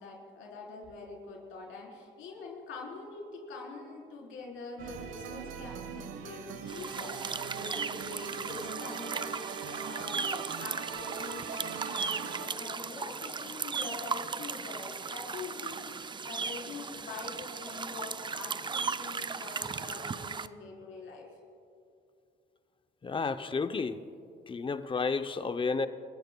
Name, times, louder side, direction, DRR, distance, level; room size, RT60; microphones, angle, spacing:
voice 1, 0.0-21.3, left 3 dB, 85° left, 4.1 m, -44 dB
sound 1, 4.8-12.5, right 7 dB, 90° right, 0.9 m, -41 dB
sound 2, 6.7-20.5, right 5 dB, 25° right, 0.4 m, -37 dB
voice 2, 23.0-24.0 24.5-25.9, left 4 dB, 25° left, 0.7 m, -31 dB
29.5 x 14.5 x 2.3 m
cardioid pair, 90°, 20 cm